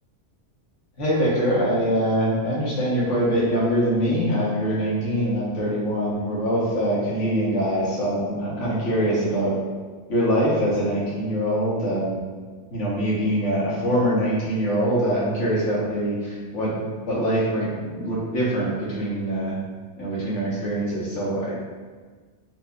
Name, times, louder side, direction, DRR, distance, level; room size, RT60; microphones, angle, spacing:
voice 1, 1.0-9.5 10.1-12.2 12.7-16.8 17.1-19.5 20.0-21.6, equal, 80° left, -6 dB, 1.3 m, -23 dB
4.3 x 2.5 x 2.2 m, 1.5 s
omnidirectional pair, 1.2 m